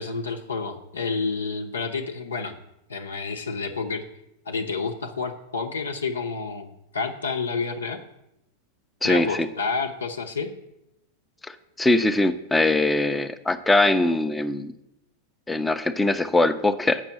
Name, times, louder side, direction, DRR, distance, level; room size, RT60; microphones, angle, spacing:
voice 1, 0.0-2.6 2.9-4.0 4.5-8.0 9.0-10.5, left 4 dB, 70° left, 4 dB, 0.7 m, -29 dB
voice 2, 9.0-9.5 11.4-14.7 15.5-17.0, left 2 dB, 10° left, 10 dB, 0.6 m, -22 dB
8.3 x 6.1 x 7.8 m, 0.86 s
figure-of-eight pair, 90°, 0 cm